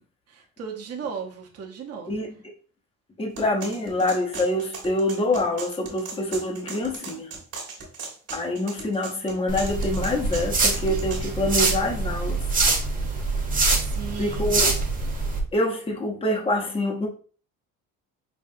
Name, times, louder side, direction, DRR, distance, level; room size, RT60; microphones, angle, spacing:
voice 1, 0.3-2.1 13.7-14.6, right 6 dB, 45° right, 0 dB, 0.9 m, -36 dB
voice 2, 3.2-7.3 8.3-12.4 14.2-14.7 15.5-17.1, left 1 dB, 15° left, 2 dB, 0.8 m, -26 dB
sound 1, 3.4-11.2, right 4 dB, 65° right, 1.6 m, -38 dB
sound 2, 9.5-15.4, right 3 dB, 25° right, 1.1 m, -25 dB
5.5 x 2.3 x 2.6 m, 0.40 s
cardioid pair, 115°, 33 cm